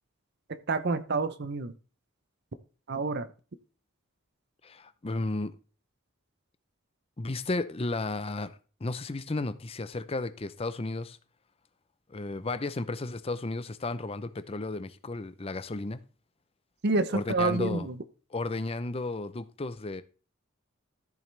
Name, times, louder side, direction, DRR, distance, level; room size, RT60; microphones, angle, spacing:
voice 1, 0.5-1.7 2.9-3.3 16.8-17.9, right 3 dB, 50° right, 0.7 m, -28 dB
voice 2, 4.6-5.6 7.2-11.2 12.1-16.0 17.1-17.9 18.3-20.0, left 2 dB, 25° left, 0.6 m, -33 dB
13.5 x 7.2 x 3.3 m
head